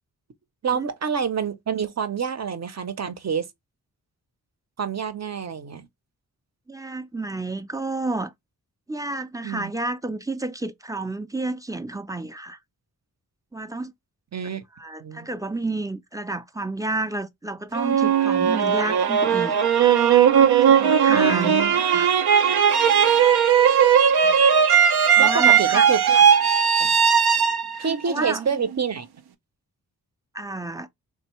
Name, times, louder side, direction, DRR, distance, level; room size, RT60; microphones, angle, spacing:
voice 1, 0.6-3.4 4.8-5.9 9.4-9.7 14.3-14.6 15.0-15.3 21.1-21.7 25.2-26.2 26.8-26.9 27.8-29.1, right 7 dB, 45° right, 0.7 m, -27 dB
voice 2, 6.7-8.3 8.9-12.6 13.5-13.9 14.8-19.6 20.6-22.1 24.2-24.4 25.1-25.9 26.1-26.2 27.7-28.4 30.3-30.9, right 2 dB, 10° right, 0.4 m, -30 dB
sound 1, 17.8-28.8, right 8 dB, 85° right, 0.6 m, -18 dB
3.5 x 2.6 x 3.0 m
cardioid pair, 60°, 37 cm